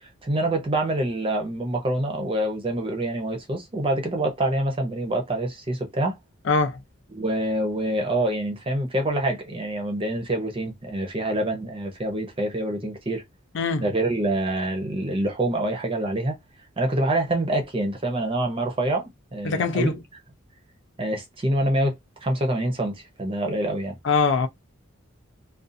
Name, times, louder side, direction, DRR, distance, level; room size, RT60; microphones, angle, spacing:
voice 1, 0.0-6.2 7.1-13.2 13.8-16.4 16.8-19.9 21.0-22.0 22.2-24.0, right 1 dB, 25° right, 0.6 m, -26 dB
voice 2, 6.5-6.8 13.5-13.9 19.4-20.0 24.0-24.5, left 4 dB, 60° left, 0.4 m, -22 dB
2.5 x 2.3 x 2.6 m
head